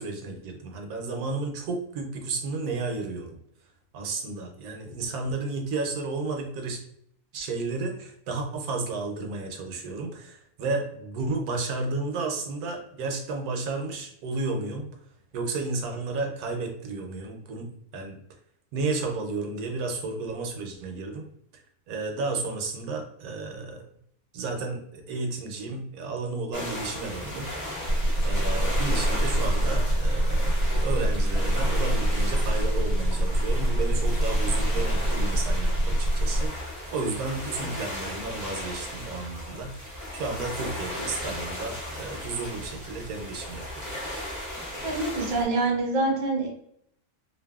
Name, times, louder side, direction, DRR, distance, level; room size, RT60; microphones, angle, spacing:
voice 1, 0.0-3.4 3.9-6.8 7.3-14.9 15.3-18.2 18.7-21.3 21.5-21.6 21.9-23.8 24.3-27.5 28.2-43.9, right 3 dB, 80° right, 3 dB, 1.1 m, -32 dB
sound 1, 26.5-45.4, left 1 dB, 20° left, 0.5 m, -36 dB
sound 2, 27.9-36.5, right 1 dB, 70° left, 1.0 m, -24 dB
voice 2, 44.8-46.5, right 2 dB, 50° right, -1 dB, 0.5 m, -25 dB
2.6 x 2.5 x 2.3 m, 0.70 s
omnidirectional pair, 1.6 m